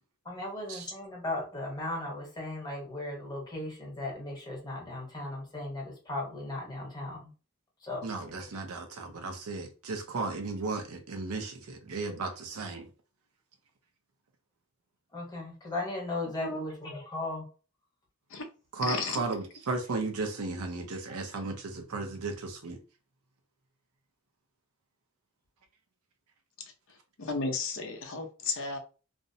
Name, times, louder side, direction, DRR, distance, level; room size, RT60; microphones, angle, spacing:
voice 1, 0.2-7.3 7.8-8.1 15.1-17.5, left 2 dB, 20° left, 1.0 m, -37 dB
voice 2, 8.0-12.9 18.7-22.8, right 3 dB, 80° right, 0.6 m, -35 dB
voice 3, 18.9-19.2 27.2-28.8, left 3 dB, 65° left, 0.6 m, -33 dB
2.5 x 2.1 x 2.6 m
head